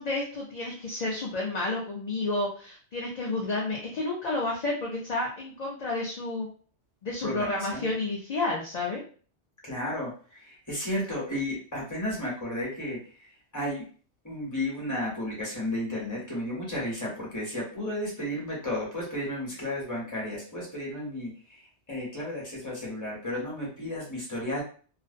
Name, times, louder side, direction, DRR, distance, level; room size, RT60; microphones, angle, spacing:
voice 1, 0.0-6.5 7.0-9.0, left 2 dB, 50° left, -3 dB, 0.5 m, -31 dB
voice 2, 7.2-7.9 9.6-13.9 14.2-24.6, left 1 dB, 15° left, -5 dB, 0.9 m, -33 dB
2.4 x 2.0 x 2.5 m, 0.41 s
omnidirectional pair, 1.2 m